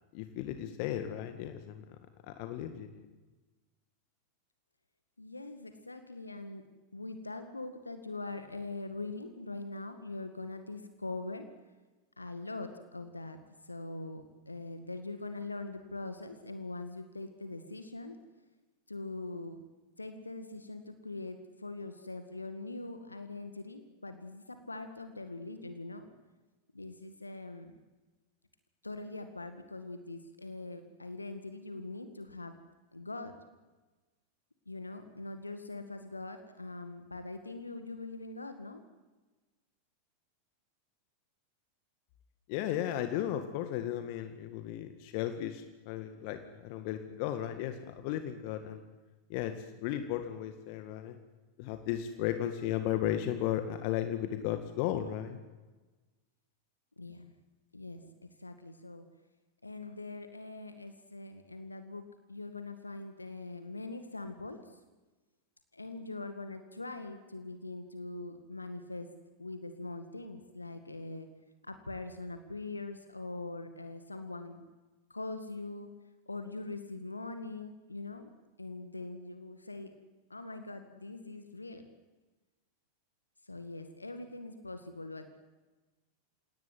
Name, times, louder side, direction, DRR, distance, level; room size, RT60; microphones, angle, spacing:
voice 1, 0.1-1.8 2.3-3.1 42.5-48.8 49.3-49.5 49.8-51.2 51.6-55.4, left 11 dB, 45° left, 8 dB, 1.9 m, -35 dB
voice 2, 5.2-6.7 6.9-11.5 12.2-18.2 18.9-19.6 20.0-26.1 26.7-27.8 28.8-32.6 32.9-33.3 34.7-38.8 57.0-57.3 57.7-59.1 59.6-64.8 65.7-69.1 69.4-71.3 71.6-74.6 75.1-75.9 76.3-78.3 78.6-79.9 80.3-81.8 83.4-85.3, left 2 dB, 80° left, 8 dB, 1.9 m, -42 dB
28.5 x 18.0 x 9.5 m, 1.2 s
figure-of-eight pair, 90°, 0 cm